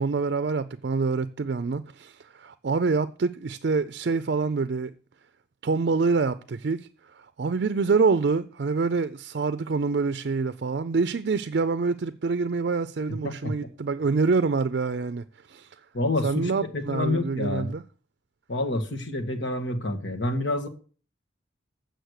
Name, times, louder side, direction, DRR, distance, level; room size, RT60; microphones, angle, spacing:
voice 1, 0.0-4.9 5.6-6.9 7.4-15.7 16.2-17.8, right 4 dB, 60° right, 0.4 m, -26 dB
voice 2, 13.1-13.5 15.9-17.7 18.5-20.7, left 2 dB, 75° left, 1.6 m, -28 dB
8.0 x 6.4 x 6.4 m
head